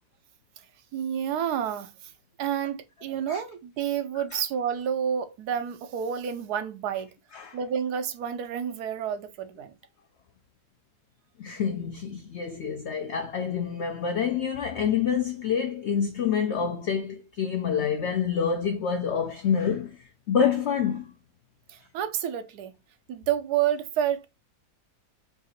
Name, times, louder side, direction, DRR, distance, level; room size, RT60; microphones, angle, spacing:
voice 1, 0.9-2.1 2.4-7.1 7.5-9.8 21.7-22.7 23.1-24.3, right 9 dB, 80° right, 1.2 m, -29 dB
voice 2, 11.4-21.1, left 7 dB, 70° left, 0.6 m, -27 dB
4.8 x 2.5 x 4.1 m
omnidirectional pair, 1.7 m